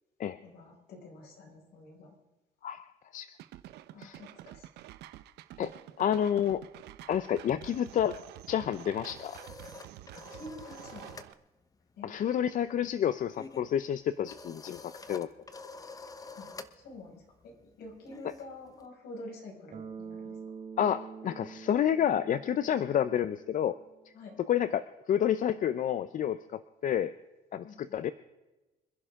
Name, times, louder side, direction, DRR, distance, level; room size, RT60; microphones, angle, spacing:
voice 1, 0.4-2.1 3.9-4.7 10.1-11.2 12.0-12.1 16.3-16.5 16.8-20.3 24.1-24.4 27.6-27.9, left 2 dB, 70° left, -1 dB, 6.1 m, -48 dB
sound 1, 3.4-11.3, right 13 dB, 80° right, 0.9 m, -49 dB
voice 2, 6.0-6.6 7.1-8.2 8.5-9.4 12.0-15.3 18.2-18.3 20.8-23.8 24.4-27.1 27.5-28.1, left 9 dB, 50° left, 13 dB, 0.7 m, -29 dB
sound 2, 8.7-11.4 11.6-11.9 12.2-18.9, left 3 dB, 20° left, 1.0 m, -49 dB
Bass guitar, 19.7-23.7, right 6 dB, 50° right, 3.7 m, -46 dB
26.5 x 11.0 x 3.7 m, 1.1 s
cardioid pair, 110°, 17 cm